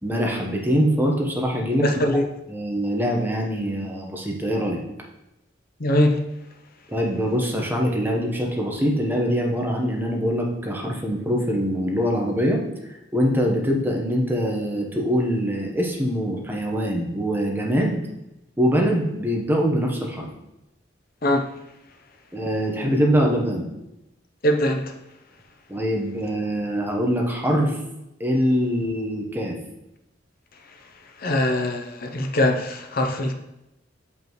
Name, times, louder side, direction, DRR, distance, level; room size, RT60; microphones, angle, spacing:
voice 1, 0.0-1.9 2.5-4.8 6.9-12.6 13.1-17.9 18.6-20.3 22.3-23.7 25.7-27.8 28.2-29.6, equal, 10° right, 1.0 m, -23 dB
voice 2, 1.8-2.3 5.8-6.2 21.2-21.5 24.4-24.9 31.2-33.3, left 1 dB, 50° left, 0.8 m, -22 dB
6.8 x 5.4 x 3.1 m
head